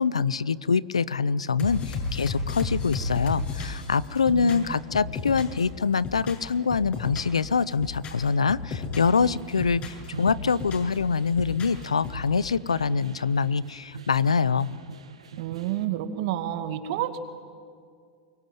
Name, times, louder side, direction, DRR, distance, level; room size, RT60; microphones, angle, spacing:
voice 1, 0.0-14.7, left 5 dB, 90° left, 20 dB, 0.6 m, -25 dB
sound 1, 1.6-5.6 5.9-7.4 7.7-9.2 9.5-10.9 11.3-12.3, left 4 dB, 40° left, 6.6 m, -33 dB
voice 2, 4.3-4.8 15.4-17.2, right 12 dB, 60° right, 8 dB, 2.2 m, -30 dB
sound 2, 9.0-15.9, right 6 dB, 85° right, 2.0 m, -43 dB
23.5 x 23.0 x 9.1 m, 2.1 s
hypercardioid pair, 95°, 3 cm